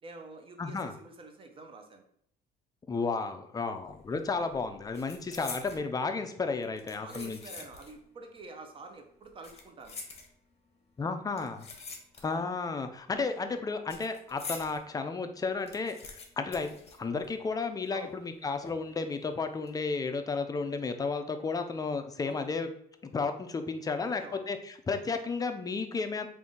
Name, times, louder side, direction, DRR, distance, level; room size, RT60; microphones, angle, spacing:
voice 1, 0.0-2.0 6.9-10.0 12.3-12.5 17.9-18.2 22.2-22.5 23.9-24.5, right 3 dB, 30° right, 4 dB, 0.7 m, -48 dB
voice 2, 0.6-0.9 2.9-7.4 11.0-11.7 12.2-22.7 23.1-24.2 24.5-24.6 24.9-26.3, left 4 dB, 20° left, 7 dB, 0.4 m, -33 dB
sound 1, 3.9-4.2 4.5-5.9 6.6-8.0 8.3-8.4 9.2-10.7 11.3-12.5 12.8-14.8 15.2-15.3 15.5-17.6 17.8-17.9 18.6-19.1 19.5-19.7, left 4 dB, 40° left, 0.8 m, -45 dB
3.6 x 2.6 x 3.8 m, 0.69 s
cardioid pair, 110°, 17 cm